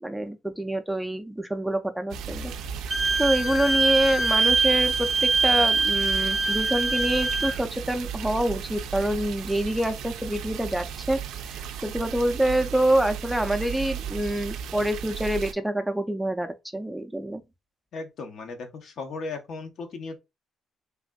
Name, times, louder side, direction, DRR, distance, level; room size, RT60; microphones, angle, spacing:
voice 1, 0.0-2.5 3.2-11.2 11.5-17.4, right 1 dB, 5° right, 0.3 m, -26 dB
sound 1, 2.1-15.5, right 7 dB, 90° right, 0.3 m, -35 dB
Wind instrument woodwind instrument, 2.9-7.6, right 4 dB, 35° right, 0.7 m, -23 dB
voice 2, 17.9-20.2, left 3 dB, 70° left, 0.6 m, -36 dB
3.3 x 2.5 x 2.2 m
cardioid pair, 90°, 0 cm